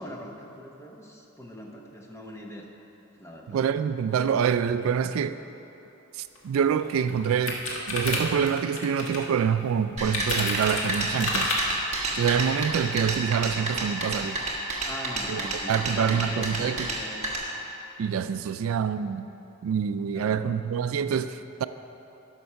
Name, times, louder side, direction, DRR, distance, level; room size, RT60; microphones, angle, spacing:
voice 1, 0.0-2.7 3.1-3.6 14.8-17.6 20.1-20.5, equal, 15° left, 0 dB, 0.9 m, -41 dB
voice 2, 3.5-5.4 6.1-7.6 7.9-11.5 12.2-14.4 15.3-15.4 15.7-16.9 18.0-19.3 19.6-21.7, right 7 dB, 65° right, 13 dB, 0.3 m, -26 dB
sound 1, 6.4-6.5 6.8-9.3 10.1-11.6, left 2 dB, 75° left, 1.5 m, -30 dB
sound 2, 10.0-17.4, right 2 dB, 30° right, 1.4 m, -30 dB
11.0 x 6.3 x 5.7 m, 3.0 s
head